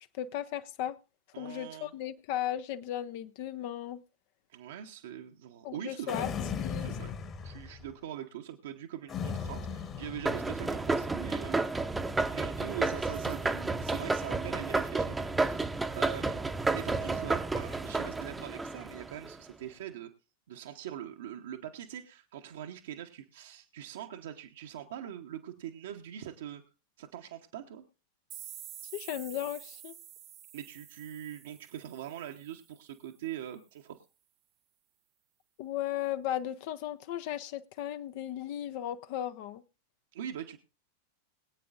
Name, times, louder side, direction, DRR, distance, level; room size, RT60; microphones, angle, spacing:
voice 1, 0.1-1.0 1.4-4.0 5.6-6.3 6.6-7.0 28.9-30.0 35.6-39.6, left 11 dB, 50° left, 0.5 m, -36 dB
voice 2, 1.3-1.9 4.5-6.3 6.8-7.2 7.4-11.9 12.3-20.1 20.5-26.6 27.0-27.8 30.5-34.1 40.1-40.6, right 10 dB, 60° right, 0.9 m, -43 dB
sound 1, 6.1-7.9 9.1-10.9, left 6 dB, 30° left, 1.3 m, -37 dB
sound 2, 10.2-19.3, right 3 dB, 10° right, 0.7 m, -31 dB
sound 3, 28.3-33.0, right 12 dB, 35° right, 1.0 m, -49 dB
22.0 x 8.5 x 2.5 m
figure-of-eight pair, 90°, 0 cm